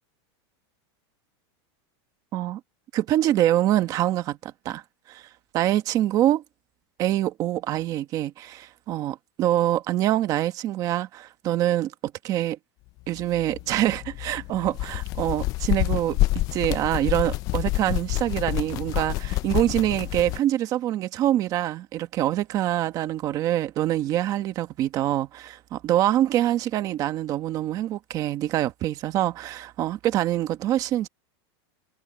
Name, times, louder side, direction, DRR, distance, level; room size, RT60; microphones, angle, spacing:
voice 1, 2.9-4.8 5.1-5.2 5.5-6.4 7.0-11.9 12.2-12.6 13.1-16.2 16.5-31.1, right 13 dB, 25° right, 1.1 m, -25 dB
sound 1, 13.2-20.4, left 18 dB, 25° left, 0.4 m, -28 dB
supercardioid pair, 175°, 14 cm